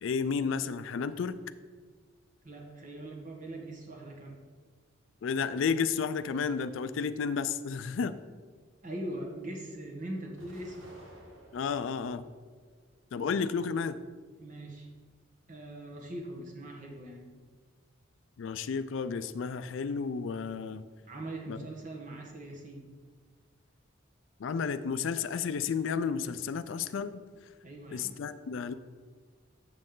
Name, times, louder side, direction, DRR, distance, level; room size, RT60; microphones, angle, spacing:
voice 1, 0.0-1.4 5.2-8.2 11.5-12.2 13.1-14.0 18.4-20.9 21.5-21.6 24.4-27.2 27.9-28.7, left 5 dB, 75° left, 13 dB, 0.4 m, -32 dB
voice 2, 2.4-4.4 8.8-10.9 13.2-13.4 14.4-14.9 15.5-17.4 21.1-22.9 27.6-28.2, right 1 dB, 40° right, 1 dB, 1.3 m, -41 dB
Explosion, 10.4-12.0 12.6-13.4, right 1 dB, 85° right, 1.7 m, -54 dB
7.6 x 7.1 x 3.8 m, 1.5 s
head